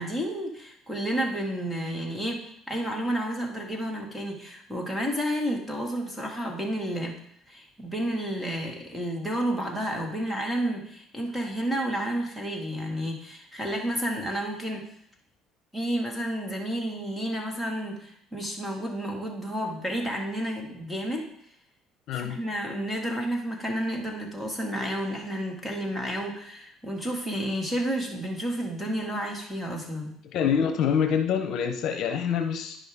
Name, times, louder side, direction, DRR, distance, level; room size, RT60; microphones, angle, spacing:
voice 1, 0.0-7.2 7.5-14.9 15.7-21.3 22.1-30.1, right 1 dB, ahead, 0 dB, 2.0 m, -31 dB
voice 2, 22.1-22.4 30.3-32.8, left 7 dB, 65° left, 6 dB, 0.8 m, -26 dB
10.0 x 5.5 x 3.6 m, 0.68 s
supercardioid pair, 95°, 0 cm